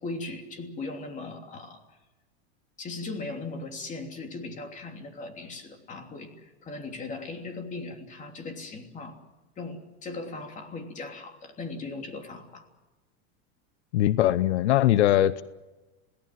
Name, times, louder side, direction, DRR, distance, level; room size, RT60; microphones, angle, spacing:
voice 1, 0.0-1.8 2.8-9.2 9.6-12.7, left 3 dB, 20° left, 4 dB, 3.1 m, -38 dB
voice 2, 13.9-15.4, left 13 dB, 90° left, 17 dB, 0.8 m, -21 dB
27.5 x 18.0 x 7.7 m, 1.1 s
supercardioid pair, 145°, 33 cm